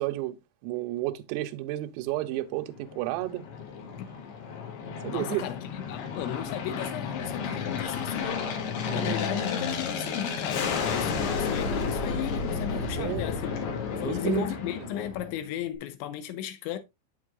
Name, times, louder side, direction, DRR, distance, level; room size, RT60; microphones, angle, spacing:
voice 1, 0.0-3.4 5.0-5.4 8.9-9.2 12.8-13.2 14.1-14.5, right 16 dB, 90° right, 3.3 m, -32 dB
Aircraft, 2.7-15.5, left 5 dB, 65° left, 3.0 m, -32 dB
voice 2, 5.1-13.5 14.0-16.8, left 10 dB, 80° left, 2.8 m, -35 dB
8.1 x 7.4 x 2.4 m
omnidirectional pair, 5.9 m